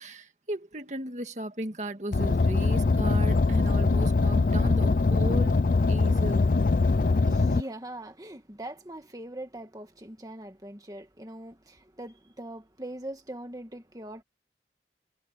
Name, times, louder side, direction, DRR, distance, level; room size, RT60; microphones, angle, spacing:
voice 1, 0.0-5.5 5.9-6.5, right 1 dB, 40° right, 1.9 m, -36 dB
Car, 2.1-7.6, left 3 dB, 50° left, 0.5 m, -23 dB
voice 2, 6.8-14.2, right 1 dB, 20° right, 1.7 m, -41 dB
head